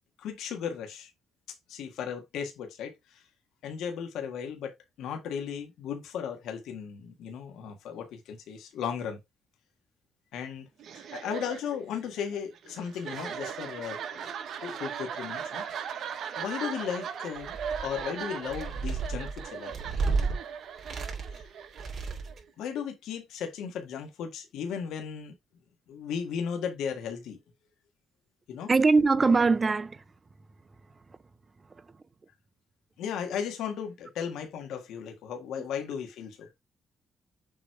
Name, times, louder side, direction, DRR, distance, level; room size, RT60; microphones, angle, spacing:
voice 1, 0.2-1.1 1.7-3.2 3.6-9.2 10.3-10.7 11.0-14.3 14.6-15.6 16.3-17.6 17.8-19.7 21.3-21.4 22.6-25.3 25.9-27.4 28.5-28.7 33.0-36.5, left 7 dB, 85° left, 1.6 m, -36 dB
sound 1, 10.8-22.5, right 7 dB, 70° right, 1.1 m, -39 dB
sound 2, 17.4-18.0 18.4-20.3 20.8-21.4 21.7-22.4, right 4 dB, 50° right, 2.9 m, -32 dB
voice 2, 28.7-30.0, right 4 dB, 30° right, 0.6 m, -22 dB
7.2 x 3.1 x 4.5 m
cardioid pair, 90°, 0 cm